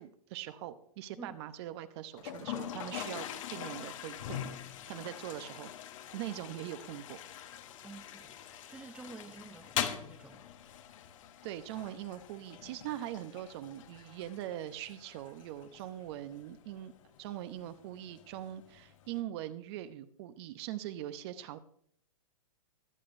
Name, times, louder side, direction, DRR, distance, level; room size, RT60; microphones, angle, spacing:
voice 1, 0.0-4.4 4.9-5.7 6.1-7.2 11.4-16.9 17.2-21.6, right 13 dB, 45° right, 11 dB, 0.9 m, -42 dB
Toilet flush, 2.2-19.2, left 10 dB, 60° left, 1.2 m, -43 dB
voice 2, 7.8-10.4, right 3 dB, 5° right, 8 dB, 0.7 m, -50 dB
20.5 x 8.6 x 2.7 m, 0.64 s
hypercardioid pair, 120°, 19 cm